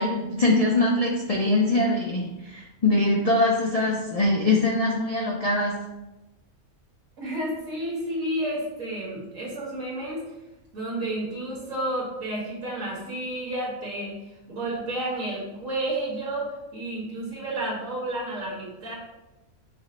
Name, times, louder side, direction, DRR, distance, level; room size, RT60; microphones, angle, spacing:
voice 1, 0.0-5.8, left 2 dB, 70° left, -2 dB, 0.3 m, -23 dB
voice 2, 7.2-10.3 10.7-14.2 14.5-19.0, right 1 dB, 65° right, -5 dB, 2.0 m, -31 dB
5.5 x 2.1 x 3.9 m, 1.0 s
omnidirectional pair, 1.5 m